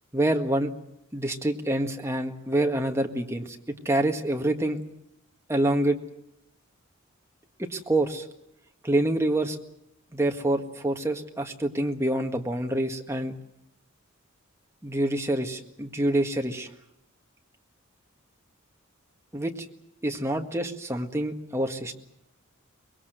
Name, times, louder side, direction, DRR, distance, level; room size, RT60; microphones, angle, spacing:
voice 1, 0.1-0.7 1.1-4.8 5.5-6.0 7.6-8.3 8.8-9.6 10.1-13.3 14.8-16.7 19.3-19.7 20.0-21.9, right 1 dB, 15° right, 3 dB, 1.7 m, -26 dB
24.5 x 21.0 x 8.0 m, 0.77 s
head